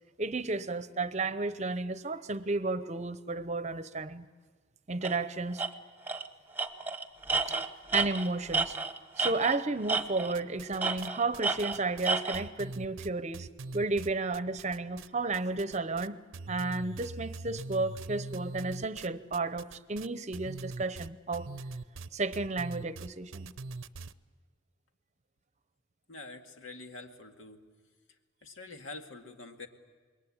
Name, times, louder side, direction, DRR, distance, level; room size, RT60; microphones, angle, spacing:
voice 1, 0.2-4.2 4.9-5.6 7.9-8.8 9.2-13.5 13.7-16.2 16.5-21.5 22.1-23.5, right 3 dB, 35° right, 13 dB, 0.8 m, -32 dB
Tools, 5.0-5.2 5.6-5.7 6.1-6.3 6.6-9.6 9.9-10.4 10.8-12.4, right 4 dB, 10° right, 1.1 m, -31 dB
sound 1, 10.3-11.1 11.3-15.1 15.3-16.1 16.3-24.1, right 3 dB, 85° right, 0.7 m, -42 dB
voice 2, 26.1-27.6 28.4-29.7, left 3 dB, 80° left, 4 dB, 2.2 m, -46 dB
27.5 x 22.0 x 8.7 m, 1.4 s
head